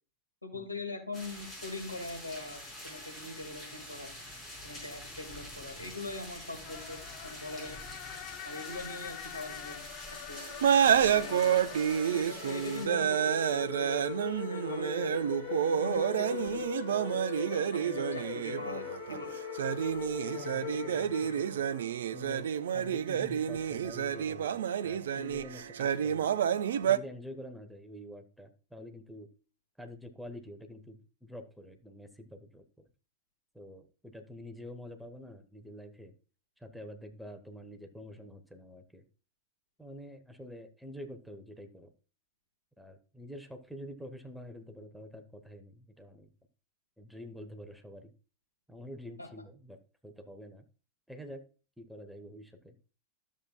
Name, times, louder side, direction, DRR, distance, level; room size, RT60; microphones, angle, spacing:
voice 1, 0.4-4.1 4.6-7.8 8.4-9.9 10.3-10.4 10.8-11.6 12.1-13.9 14.4-19.4 21.2-21.5 49.2-49.3, left 2 dB, 85° left, 3 dB, 2.0 m, -42 dB
sound 1, 1.1-12.9, left 1 dB, 15° left, 5.1 m, -46 dB
sound 2, 6.6-21.9, left 17 dB, 45° left, 0.4 m, -41 dB
sound 3, 10.4-27.0, right 9 dB, 60° right, 0.5 m, -29 dB
voice 2, 20.3-21.7 22.1-26.3 26.8-29.3 29.8-32.6 33.5-36.1 36.6-39.0 39.8-41.9 42.8-46.3 47.0-48.1 48.7-50.6 51.1-51.4 51.8-52.7, equal, ahead, 6 dB, 1.1 m, -47 dB
13.0 x 7.3 x 2.3 m, 0.35 s
figure-of-eight pair, 90°, 0 cm